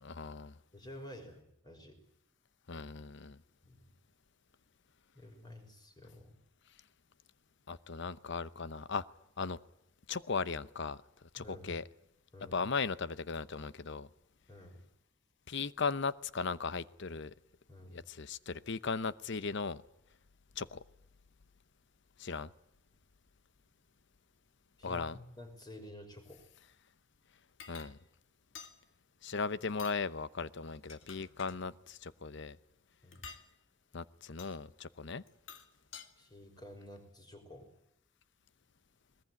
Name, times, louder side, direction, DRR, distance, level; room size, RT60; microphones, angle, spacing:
voice 1, 0.0-0.6 2.7-3.4 7.7-9.0 9.4-9.6 10.1-11.0 11.3-11.8 12.5-14.1 15.5-17.3 17.9-19.8 20.6-20.8 22.2-22.5 24.8-25.2 27.7-28.0 29.2-32.6 33.9-35.2, left 4 dB, 65° left, 0.8 m, -37 dB
voice 2, 0.7-2.0 3.6-3.8 5.1-6.4 11.4-11.7 12.3-12.6 14.5-14.8 17.7-18.0 24.8-26.4 33.0-33.3 36.2-37.7, left 1 dB, 20° left, 5.8 m, -51 dB
sound 1, 27.6-27.9 28.5-28.8 29.7-30.0 30.7-31.6 33.1-33.5 34.4-34.5 35.3-36.1, left 6 dB, 80° left, 2.1 m, -50 dB
20.5 x 20.5 x 9.7 m
head